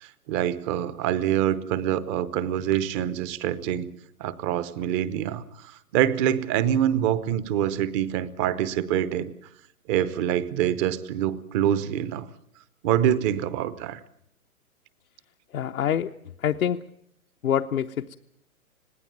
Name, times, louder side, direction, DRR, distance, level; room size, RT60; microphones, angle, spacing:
voice 1, 0.0-3.9 4.2-9.3 9.9-12.3 12.8-14.0, right 10 dB, 20° right, 16 dB, 0.8 m, -25 dB
voice 2, 15.5-16.1 16.4-16.8 17.4-18.1, left 9 dB, 70° left, 4 dB, 0.9 m, -25 dB
21.0 x 16.5 x 9.4 m, 0.74 s
hypercardioid pair, 130°, 43 cm